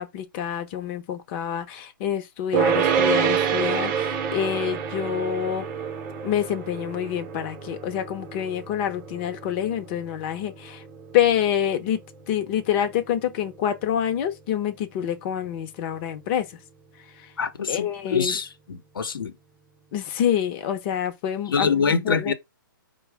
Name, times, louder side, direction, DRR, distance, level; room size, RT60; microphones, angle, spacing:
voice 1, 0.0-5.6 6.2-10.8 11.1-12.0 12.3-16.5 17.7-18.4 19.9-22.3, left 10 dB, 30° left, 0.8 m, -27 dB
sound 1, 2.5-13.8, right 7 dB, 30° right, 0.8 m, -28 dB
voice 2, 17.4-19.3 21.5-22.3, left 5 dB, 75° left, 0.9 m, -25 dB
4.6 x 2.3 x 4.7 m
hypercardioid pair, 140°, 12 cm